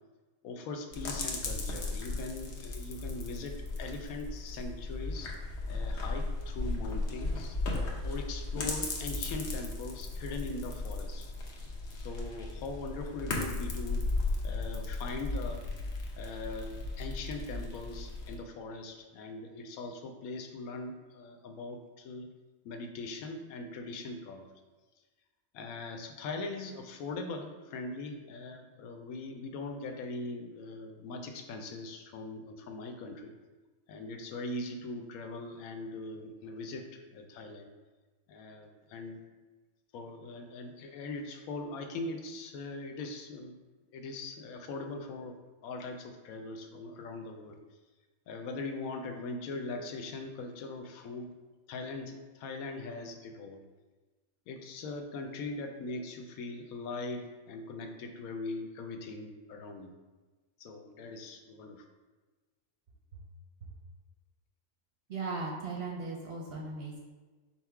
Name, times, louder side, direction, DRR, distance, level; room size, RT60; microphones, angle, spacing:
voice 1, 0.4-5.3 5.7-7.6 8.0-11.3 11.9-14.1 14.4-15.6 16.2-22.3 22.6-24.5 25.5-33.3 33.9-37.7 38.3-39.2 39.9-43.6 43.9-47.6 48.3-51.3 51.7-53.6 54.5-59.9 60.6-61.8, left 3 dB, 85° left, 5 dB, 1.0 m, -41 dB
sound 1, 0.9-18.3, left 2 dB, 60° left, 1.0 m, -36 dB
voice 2, 65.1-67.0, right 3 dB, 60° right, -1 dB, 0.7 m, -37 dB
5.6 x 2.0 x 4.5 m, 1.3 s
omnidirectional pair, 1.5 m